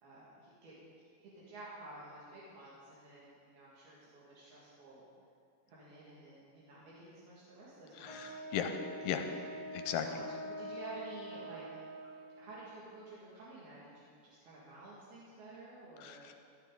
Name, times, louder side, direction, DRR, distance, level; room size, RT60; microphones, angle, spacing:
voice 1, 0.0-0.7 1.2-5.0 5.7-8.6 9.1-9.5 10.0-11.6 12.4-16.2, right 2 dB, 80° right, -8 dB, 4.0 m, -52 dB
voice 2, 8.0-9.2 9.7-10.1 16.0-16.3, left 9 dB, 80° left, 6 dB, 2.2 m, -37 dB
Wind instrument woodwind instrument, 8.0-12.5, equal, 40° left, 0.9 m, -45 dB
15.5 x 11.5 x 3.9 m, 2.3 s
omnidirectional pair, 4.3 m